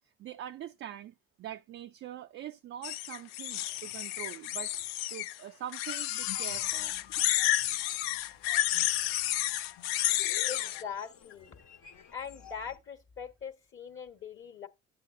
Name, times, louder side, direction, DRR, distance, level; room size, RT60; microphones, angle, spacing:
voice 1, 0.2-4.7 5.1-6.9, right 11 dB, 45° right, 0.4 m, -43 dB
sound 1, 2.8-5.4 5.7-10.8, left 14 dB, 80° left, 0.5 m, -31 dB
sound 2, 6.0-12.8, left 7 dB, 60° left, 1.3 m, -52 dB
voice 2, 10.5-11.6 12.1-14.7, left 7 dB, 40° left, 1.4 m, -41 dB
11.0 x 7.7 x 2.6 m
hypercardioid pair, 65°, 30 cm